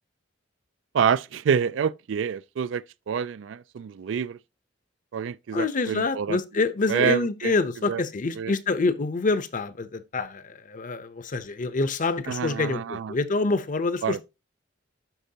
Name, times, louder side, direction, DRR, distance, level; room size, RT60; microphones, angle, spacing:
voice 1, 0.9-4.4 5.1-6.4 6.9-7.5 7.9-8.0 8.4-8.5 12.3-13.1 14.0-14.2, right 7 dB, 85° right, 0.3 m, -27 dB
voice 2, 5.5-14.2, left 3 dB, 45° left, 0.7 m, -26 dB
11.5 x 4.5 x 2.8 m
head